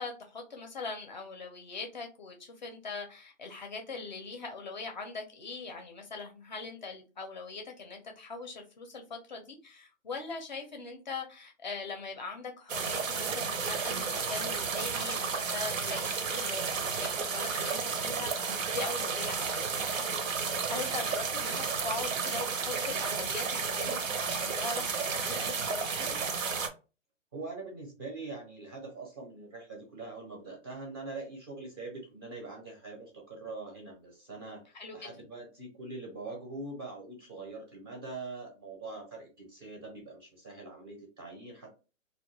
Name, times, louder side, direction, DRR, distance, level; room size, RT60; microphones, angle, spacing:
voice 1, 0.0-20.1 20.6-26.2 34.7-35.1, left 3 dB, 35° left, 3 dB, 0.4 m, -41 dB
sound 1, 12.7-26.7, right 5 dB, 85° right, 0.6 m, -32 dB
voice 2, 27.3-34.6 34.9-41.7, right 3 dB, 20° right, 0 dB, 0.5 m, -43 dB
2.2 x 2.1 x 2.8 m, 0.32 s
hypercardioid pair, 140°, 38 cm